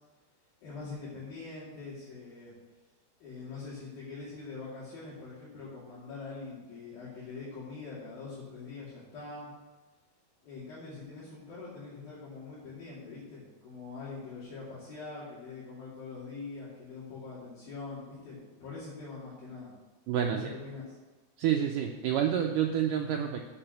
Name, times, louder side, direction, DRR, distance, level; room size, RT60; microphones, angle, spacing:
voice 1, 0.6-2.5 3.2-9.5 10.4-19.7 20.2-21.0, left 4 dB, 65° left, -9 dB, 4.3 m, -43 dB
voice 2, 20.1-20.5 21.4-23.4, right 9 dB, 90° right, 2 dB, 1.8 m, -28 dB
8.1 x 7.6 x 7.9 m, 1.2 s
omnidirectional pair, 4.7 m